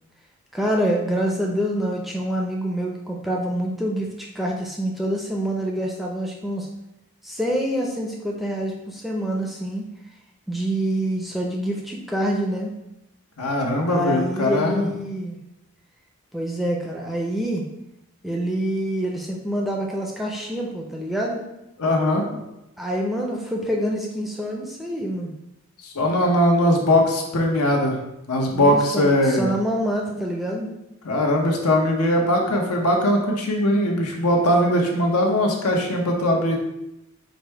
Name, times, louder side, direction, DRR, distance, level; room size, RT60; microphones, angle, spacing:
voice 1, 0.5-6.7 7.2-9.8 10.5-12.7 13.8-15.4 16.3-17.7 18.2-21.4 22.8-25.3 28.5-30.7, equal, ahead, -1 dB, 0.4 m, -26 dB
voice 2, 13.4-14.9 21.8-22.2 25.8-28.0 28.3-29.5 31.0-36.6, left 1 dB, 90° left, 1 dB, 0.8 m, -20 dB
5.1 x 2.1 x 4.4 m, 0.90 s
head